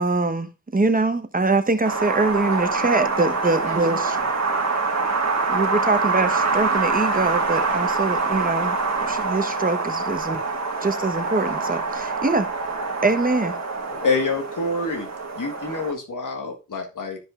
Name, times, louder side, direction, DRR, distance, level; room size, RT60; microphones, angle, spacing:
voice 1, 0.0-4.0 5.5-10.4 10.8-11.8 12.2-12.5 13.0-13.6, right 3 dB, 25° right, 1.0 m, -23 dB
Wind, 1.8-15.9, right 4 dB, 55° right, 1.6 m, -25 dB
voice 2, 2.2-3.0 3.4-5.1 5.3-5.8 11.3-11.8 13.8-14.3, left 3 dB, 50° left, 4.6 m, -42 dB
voice 3, 14.0-15.1 15.3-17.2, left 3 dB, 75° left, 1.7 m, -26 dB
13.0 x 5.3 x 2.5 m
wide cardioid pair, 80°, 31 cm